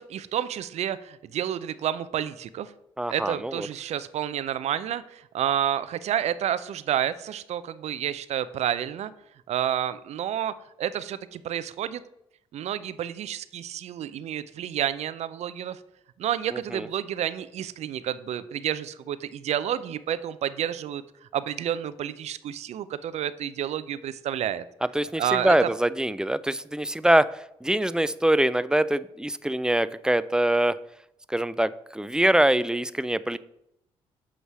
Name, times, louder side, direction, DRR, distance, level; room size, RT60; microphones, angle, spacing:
voice 1, 0.0-2.7 3.1-9.1 9.5-12.0 12.5-15.8 16.2-21.0 21.3-24.6 25.2-25.7, right 10 dB, 65° right, 14 dB, 0.5 m, -30 dB
voice 2, 3.0-3.7 16.5-16.9 24.8-30.8 31.3-33.4, right 1 dB, 5° right, 16 dB, 0.4 m, -24 dB
8.0 x 3.2 x 6.1 m, 0.80 s
supercardioid pair, 55°, 12 cm